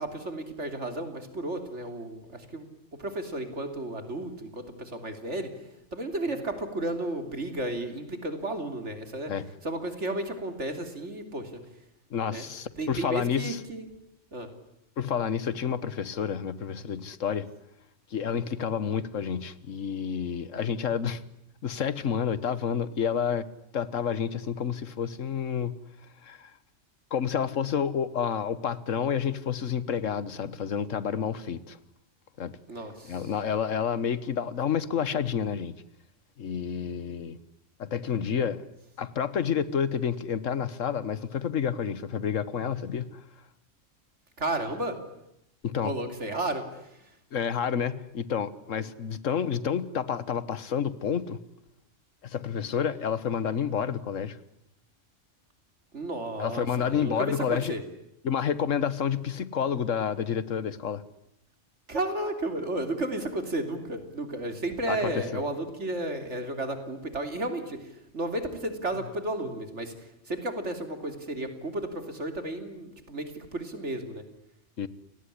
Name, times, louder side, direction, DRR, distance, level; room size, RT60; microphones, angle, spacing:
voice 1, 0.0-2.7 2.9-5.5 5.9-9.3 9.6-11.6 12.3-12.4 12.8-13.9 14.3-14.5 32.7-33.3 44.4-45.0 45.8-47.0 55.9-57.8 61.9-69.9 70.3-74.2, right 2 dB, 65° right, 3.4 m, -33 dB
voice 2, 12.1-13.6 15.0-17.5 18.1-21.2 21.6-23.4 23.7-25.7 26.2-26.5 27.1-31.8 32.4-32.6 33.1-35.8 36.4-37.4 37.8-38.6 39.0-43.1 45.6-45.9 47.3-51.4 52.2-54.4 56.4-57.8 58.2-61.0 64.9-65.4 74.8-74.9, left 7 dB, 90° left, 1.6 m, -29 dB
29.5 x 18.5 x 10.0 m
omnidirectional pair, 1.3 m